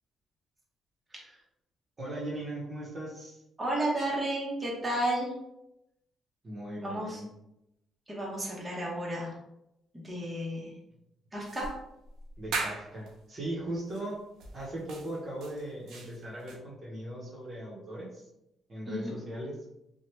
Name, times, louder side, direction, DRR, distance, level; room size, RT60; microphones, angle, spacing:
voice 1, 2.0-3.4 6.4-7.3 12.4-14.2 14.5-18.3 18.7-19.6, right 1 dB, 40° right, -5 dB, 0.9 m, -39 dB
voice 2, 3.6-5.3 6.8-7.2 8.1-9.3 9.9-10.7 11.3-11.7 18.9-19.1, right 1 dB, 15° right, -4 dB, 1.0 m, -32 dB
sound 1, 11.4-13.1 13.9-14.1 14.4-16.6, right 3 dB, 75° right, 0.5 m, -39 dB
2.9 x 2.2 x 3.1 m, 0.85 s
cardioid pair, 90°, 0 cm